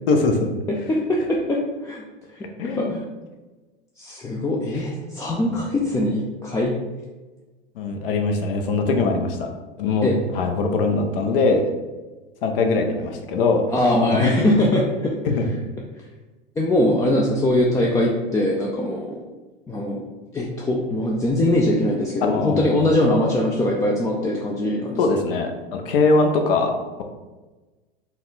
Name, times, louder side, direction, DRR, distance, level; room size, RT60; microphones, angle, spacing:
voice 1, 0.1-0.5 2.6-3.0 5.4-5.7 7.8-9.5 9.8-11.7 12.4-13.6 14.1-14.3 15.2-15.5 22.2-22.9 25.0-27.0, left 3 dB, 70° left, 4 dB, 0.8 m, -22 dB
voice 2, 0.7-2.0 2.3-3.0 4.0-6.7 10.0-10.2 13.7-15.1 16.6-19.2 19.7-20.0 20.3-25.0, left 1 dB, 10° left, -2 dB, 0.4 m, -22 dB
4.1 x 2.3 x 3.9 m, 1.2 s
hypercardioid pair, 95°, 30 cm